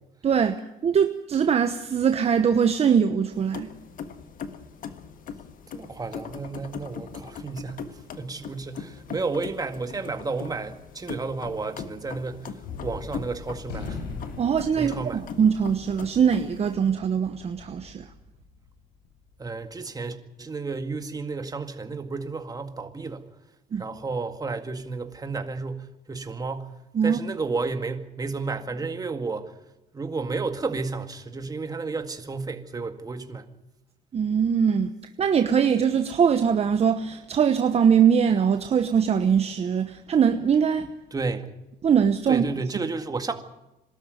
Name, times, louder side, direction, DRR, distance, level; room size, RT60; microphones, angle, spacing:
voice 1, 0.2-0.5 0.8-3.7 14.4-18.1 23.7-23.8 26.9-27.2 34.1-34.9 35.2-40.9 41.8-42.4, right 7 dB, 40° right, 1.1 m, -22 dB
sound 1, 3.3-16.8, left 6 dB, 55° left, 1.6 m, -40 dB
voice 2, 5.7-14.0 14.8-15.2 19.4-23.3 23.8-29.5 29.9-33.5 41.1-41.5 42.3-43.3, right 4 dB, 20° right, 2.0 m, -32 dB
Gunshot gunfire, 12.6-19.2, left 4 dB, 85° left, 4.3 m, -41 dB
22.5 x 13.0 x 9.4 m
cardioid pair, 110°, 17 cm